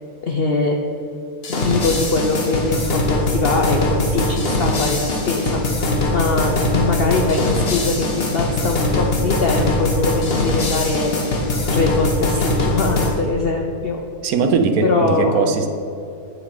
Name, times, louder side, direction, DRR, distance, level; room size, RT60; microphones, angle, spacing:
voice 1, 0.2-0.8 1.5-5.6 6.1-11.2 11.7-14.0 14.8-15.5, left 3 dB, 65° left, 2 dB, 0.6 m, -22 dB
sound 1, 1.4-13.1, left 1 dB, 40° left, 1.3 m, -21 dB
voice 2, 14.2-15.7, right 5 dB, 70° right, 7 dB, 1.1 m, -19 dB
8.6 x 6.7 x 4.9 m, 2.7 s
omnidirectional pair, 1.7 m